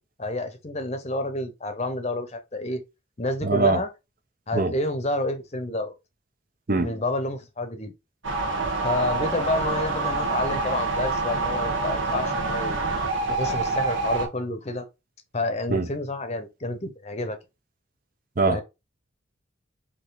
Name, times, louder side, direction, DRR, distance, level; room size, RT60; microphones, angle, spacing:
voice 1, 0.2-2.8 3.2-3.9 4.5-5.9 6.8-7.9 8.8-12.8 13.3-14.9 15.3-17.4 18.5-18.6, left 2 dB, 30° left, 0.8 m, -29 dB
voice 2, 3.4-3.8 4.5-4.7 6.7-6.9 15.7-15.9 18.4-18.6, right 3 dB, 45° right, 0.6 m, -22 dB
sound 1, 8.2-14.3, right 3 dB, 70° right, 1.3 m, -26 dB
4.5 x 3.0 x 3.9 m
head